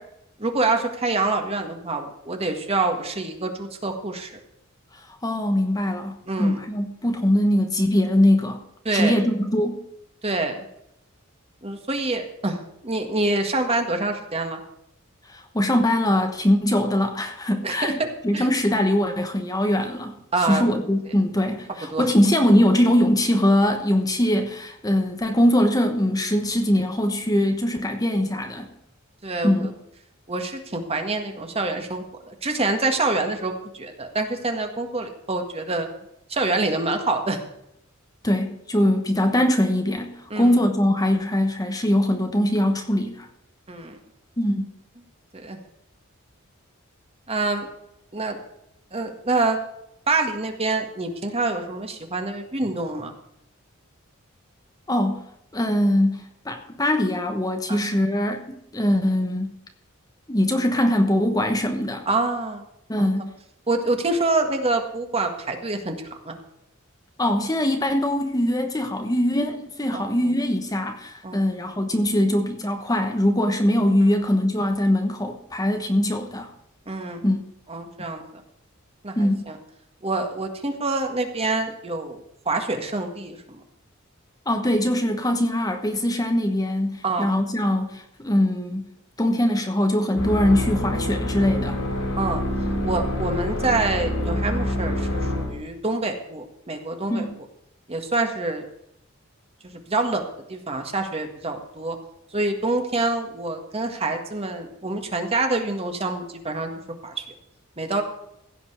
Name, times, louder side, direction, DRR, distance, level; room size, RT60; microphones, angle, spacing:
voice 1, 0.4-4.3 6.3-6.6 8.9-9.2 10.2-10.7 11.6-12.6 12.8-14.6 17.6-18.1 18.3-18.5 20.3-20.7 21.9-22.0 29.2-29.7 30.3-35.9 36.3-37.4 40.3-40.5 43.7-44.0 45.3-45.6 47.3-47.7 48.1-48.4 48.9-49.6 50.1-53.1 57.7-57.8 62.1-62.6 63.0-63.1 63.7-65.9 66.3-66.4 69.9-70.1 71.2-71.4 76.9-77.2 77.7-78.2 79.0-79.6 80.0-82.2 82.5-83.6 87.0-87.3 92.2-92.4 92.8-97.3 97.9-98.6 99.6-100.2 100.5-102.0 102.3-106.7 107.0-107.1 107.8-108.0, right 2 dB, 30° right, 5 dB, 1.7 m, -26 dB
voice 2, 5.2-8.6 8.9-9.8 15.3-28.7 29.4-29.7 38.2-43.3 44.4-44.7 54.9-55.2 55.5-59.6 60.3-62.1 62.9-63.3 67.2-76.5 77.2-77.4 79.1-79.5 84.5-88.9 89.2-91.8 97.1-97.4, left 1 dB, 15° left, 5 dB, 1.1 m, -22 dB
sound 1, 90.2-95.6, left 1 dB, 75° left, 4.7 m, -26 dB
16.0 x 5.4 x 8.0 m, 0.79 s
head